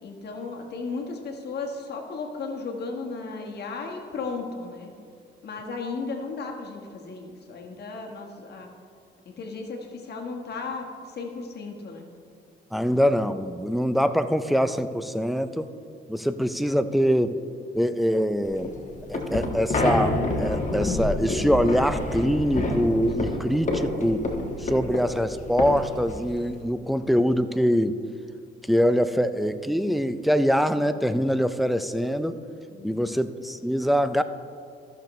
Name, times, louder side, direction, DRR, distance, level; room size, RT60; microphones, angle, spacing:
voice 1, 0.0-4.9 5.4-8.7 9.2-12.0 32.7-33.2, left 4 dB, 55° left, 1 dB, 1.4 m, -35 dB
voice 2, 12.7-15.7 16.1-17.4 17.7-18.7 19.1-24.3 24.6-28.0 28.6-32.4 32.8-34.2, equal, ahead, 11 dB, 0.4 m, -24 dB
sound 1, 18.5-26.6, left 2 dB, 40° left, 1.4 m, -28 dB
14.0 x 6.7 x 3.1 m, 2.3 s
cardioid pair, 90°, 20 cm